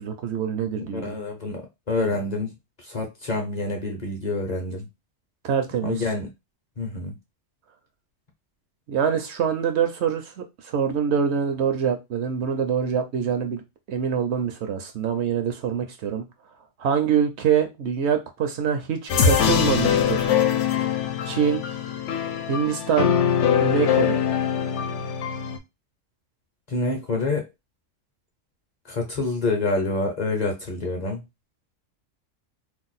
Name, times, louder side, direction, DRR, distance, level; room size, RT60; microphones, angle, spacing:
voice 1, 0.0-1.2 5.4-6.0 8.9-13.6 13.9-16.2 16.8-20.3 21.3-21.6 22.5-23.1 23.6-24.2, right 7 dB, 65° right, 0.8 m, -25 dB
voice 2, 0.8-4.9 5.8-6.3 6.8-7.2 26.7-27.5 28.9-31.2, left 3 dB, 40° left, 0.7 m, -27 dB
sound 1, 19.1-25.6, left 8 dB, 70° left, 0.9 m, -22 dB
2.7 x 2.2 x 3.9 m
omnidirectional pair, 1.3 m